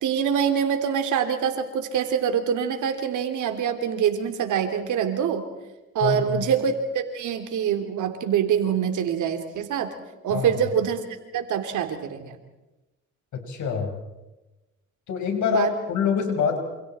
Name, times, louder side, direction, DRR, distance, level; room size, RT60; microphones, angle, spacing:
voice 1, 0.0-5.4 5.9-9.9 10.2-11.0 11.3-12.4 15.5-15.7, right 8 dB, 80° right, 7 dB, 3.1 m, -25 dB
voice 2, 6.0-6.5 10.3-10.5 13.3-13.9 15.1-16.6, left 6 dB, 70° left, 4 dB, 5.2 m, -25 dB
28.0 x 27.5 x 4.4 m, 1.0 s
cardioid pair, 90°, 30 cm